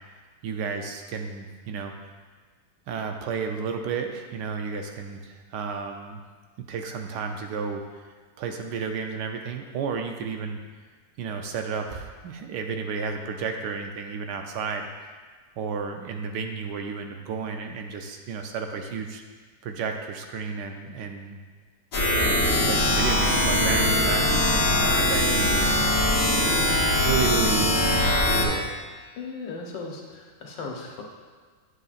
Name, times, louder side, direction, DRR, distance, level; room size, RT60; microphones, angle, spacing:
voice 1, 0.4-1.9 2.9-6.2 6.6-8.0 8.4-10.6 11.2-15.1 15.6-19.2 19.6-21.4 22.1-25.7 27.0-28.8, right 5 dB, 75° right, 4 dB, 1.1 m, -32 dB
sound 1, 21.9-28.4, left 1 dB, 50° left, 1.5 m, -22 dB
voice 2, 29.2-31.0, left 4 dB, 75° left, -1 dB, 1.6 m, -37 dB
8.4 x 7.8 x 2.4 m, 1.5 s
omnidirectional pair, 2.0 m